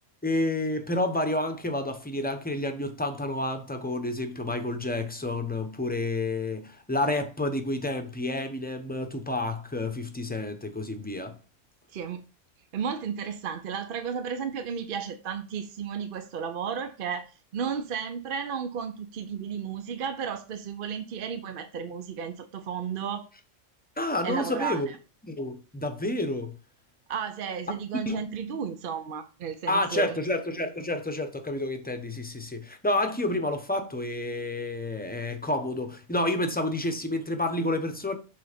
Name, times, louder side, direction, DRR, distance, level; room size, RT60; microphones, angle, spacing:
voice 1, 0.2-11.4 24.0-24.9 25.2-26.6 28.1-28.3 29.7-38.2, left 1 dB, 10° left, 0.8 m, -29 dB
voice 2, 12.7-23.3 24.2-25.0 27.1-30.1, right 7 dB, 55° right, 0.7 m, -33 dB
6.8 x 4.0 x 5.0 m
omnidirectional pair, 1.3 m